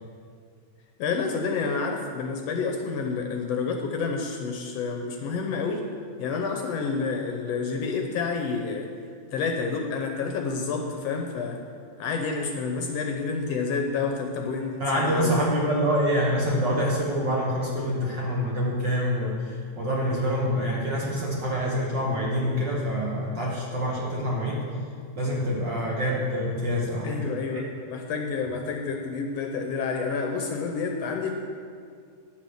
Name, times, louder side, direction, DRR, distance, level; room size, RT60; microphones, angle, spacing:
voice 1, 1.0-5.9 6.2-8.9 9.3-11.6 12.0-15.4 27.0-31.3, left 4 dB, 70° left, 3 dB, 1.7 m, -29 dB
voice 2, 14.8-24.6 25.1-27.2, equal, 50° right, -4 dB, 1.5 m, -26 dB
9.7 x 7.5 x 6.3 m, 2.2 s
omnidirectional pair, 3.3 m